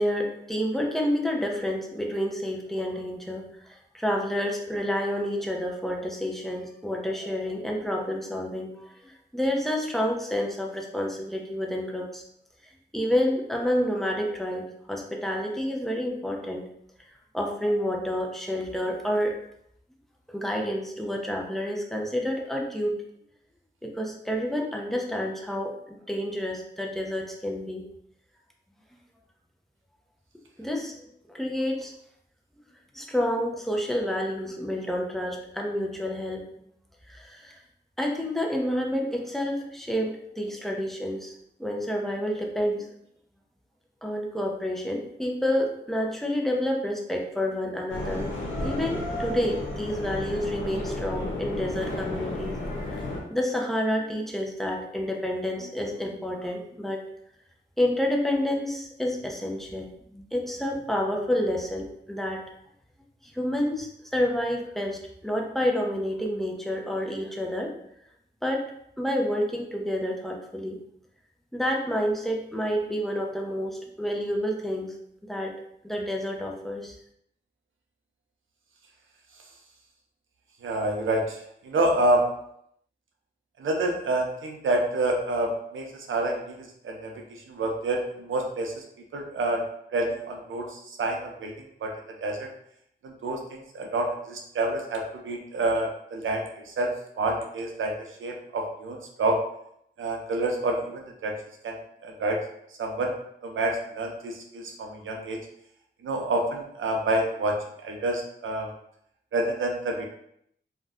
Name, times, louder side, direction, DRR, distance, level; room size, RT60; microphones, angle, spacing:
voice 1, 0.0-12.2 12.9-16.7 17.3-19.4 20.3-23.0 23.8-27.8 30.6-31.9 32.9-36.4 37.1-37.6 38.0-41.3 41.6-42.9 44.0-48.3 48.6-52.6 52.9-53.0 53.3-57.0 57.8-62.4 63.2-67.7 68.4-68.6 69.0-70.8 71.5-74.9 75.3-75.5 75.8-77.0, equal, ahead, 0 dB, 0.6 m, -29 dB
sound 1, 47.9-53.2, left 1 dB, 80° left, 0.7 m, -32 dB
voice 2, 80.6-81.4 81.6-82.3 83.6-88.8 89.1-89.6 89.9-91.5 91.8-91.9 92.2-92.5 93.0-97.9 98.2-99.4 100.0-101.3 101.6-101.8 102.0-102.4 102.8-103.1 103.4-105.4 106.0-107.6 107.8-108.7 109.3-110.1, right 2 dB, 90° right, 1 dB, 0.5 m, -28 dB
2.5 x 2.2 x 3.4 m, 0.73 s
cardioid pair, 55°, 20 cm